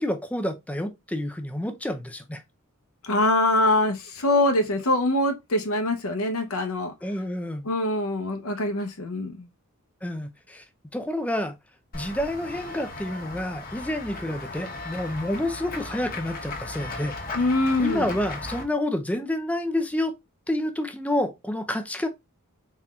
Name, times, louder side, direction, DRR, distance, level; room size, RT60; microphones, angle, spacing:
voice 1, 0.0-2.4 7.0-7.7 10.0-10.6 10.9-11.5 11.9-17.2 17.8-20.1 20.5-22.1, left 1 dB, 5° left, 0.5 m, -29 dB
voice 2, 3.0-6.9 7.6-9.5 17.3-18.1, left 1 dB, 70° left, 0.8 m, -24 dB
Run / Walk footsteps / Bell, 11.9-18.6, left 2 dB, 40° left, 1.1 m, -37 dB
4.2 x 3.8 x 2.4 m
head